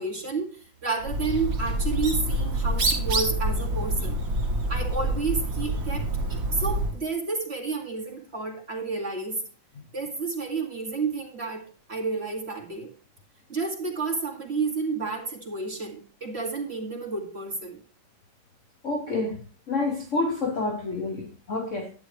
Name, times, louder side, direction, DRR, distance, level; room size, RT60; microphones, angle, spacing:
voice 1, 0.0-4.2 4.7-9.4 9.9-12.9 13.5-17.8, right 4 dB, 30° right, 2.4 m, -31 dB
Bird, 1.0-7.0, right 1 dB, 55° right, 2.3 m, -27 dB
voice 2, 18.8-21.9, left 3 dB, 50° left, 1.1 m, -29 dB
11.0 x 9.7 x 3.2 m
omnidirectional pair, 2.1 m